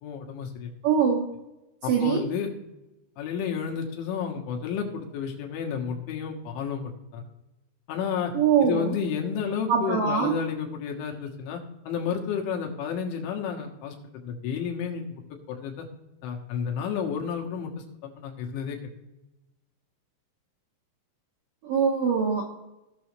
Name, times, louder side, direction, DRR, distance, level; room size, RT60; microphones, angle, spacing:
voice 1, 0.0-0.7 1.8-2.5 3.2-7.2 7.9-8.3 8.6-11.6 11.9-14.0 14.2-15.2 15.5-15.9 16.2-17.7 18.0-18.8, left 7 dB, 80° left, 1 dB, 3.7 m, -31 dB
voice 2, 0.8-1.3 1.9-2.2 8.3-8.9 9.7-10.3 21.6-22.4, right 6 dB, 75° right, -1 dB, 2.0 m, -23 dB
17.5 x 6.3 x 3.2 m, 0.97 s
omnidirectional pair, 5.4 m